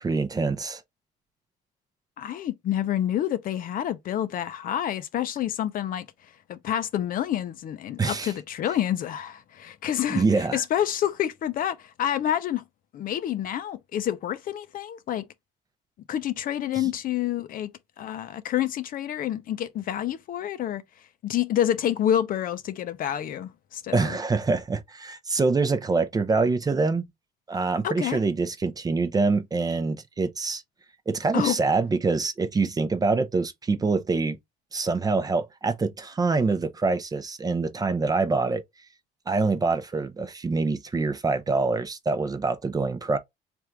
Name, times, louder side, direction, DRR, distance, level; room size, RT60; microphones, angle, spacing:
voice 1, 0.0-0.8 8.0-8.3 10.1-10.6 23.9-27.1 27.5-30.6 31.1-34.4 34.7-38.6 39.3-43.2, right 4 dB, 20° right, 0.6 m, -25 dB
voice 2, 2.2-12.6 12.9-15.2 16.1-17.7 18.0-20.8 21.2-24.2 27.8-28.2 31.3-31.6, left 11 dB, 55° left, 0.6 m, -28 dB
3.5 x 2.5 x 4.5 m
cardioid pair, 110°, 17 cm